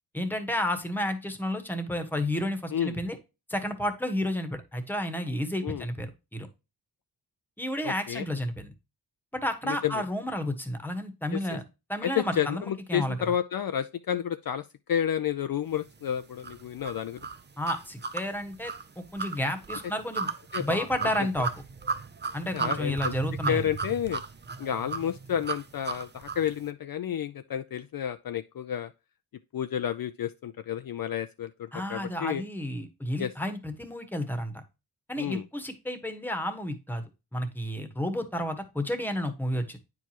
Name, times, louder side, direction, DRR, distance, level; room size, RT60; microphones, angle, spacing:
voice 1, 0.1-3.2 3.5-6.5 7.6-8.7 9.3-11.6 11.9-13.2 17.6-20.3 20.6-21.5 22.3-23.7 31.7-34.5 35.1-37.0 37.3-39.8, left 1 dB, 5° left, 1.3 m, -31 dB
voice 2, 7.8-8.3 9.6-10.0 11.3-11.6 12.0-17.2 20.5-21.3 22.5-23.1 23.5-24.2 24.6-28.9 29.5-32.4 33.2-33.3 35.2-35.4, left 9 dB, 55° left, 0.5 m, -31 dB
sound 1, 16.4-26.5, right 5 dB, 25° right, 0.5 m, -35 dB
9.6 x 4.7 x 2.9 m
wide cardioid pair, 105°, 42 cm